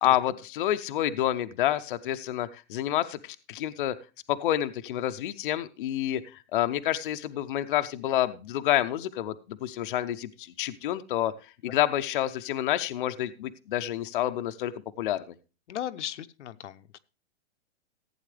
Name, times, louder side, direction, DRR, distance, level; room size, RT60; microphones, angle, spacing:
voice 1, 0.0-3.9 4.3-11.3 11.6-14.7 15.0-15.2, left 12 dB, 50° left, 9 dB, 0.6 m, -28 dB
voice 2, 15.7-17.0, left 11 dB, 80° left, 10 dB, 0.9 m, -37 dB
15.0 x 8.7 x 3.3 m, 0.32 s
hypercardioid pair, 170°, 34 cm